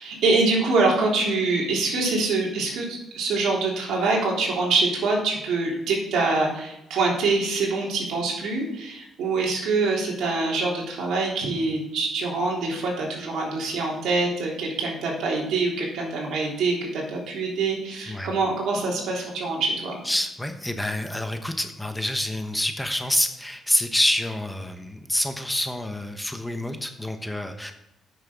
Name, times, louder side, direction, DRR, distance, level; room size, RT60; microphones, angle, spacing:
voice 1, 0.0-20.0, right 3 dB, 75° right, -2 dB, 3.4 m, -25 dB
voice 2, 20.1-27.7, left 1 dB, 5° left, 6 dB, 1.1 m, -27 dB
9.0 x 6.6 x 6.2 m, 0.90 s
cardioid pair, 90°, 0 cm